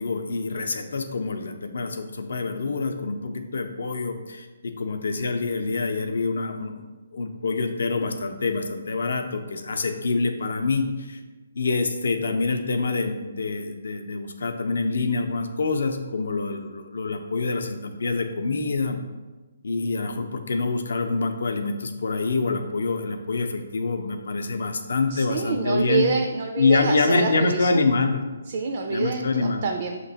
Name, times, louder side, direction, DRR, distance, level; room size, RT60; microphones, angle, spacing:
voice 1, 0.0-6.9 7.1-11.2 11.6-19.0 19.6-26.1 26.6-28.2 28.9-29.6, left 3 dB, 75° left, 6 dB, 0.5 m, -26 dB
voice 2, 25.1-27.9 28.5-30.0, right 4 dB, 45° right, 3 dB, 0.3 m, -26 dB
6.0 x 2.9 x 2.8 m, 1.2 s
hypercardioid pair, 165°, 0 cm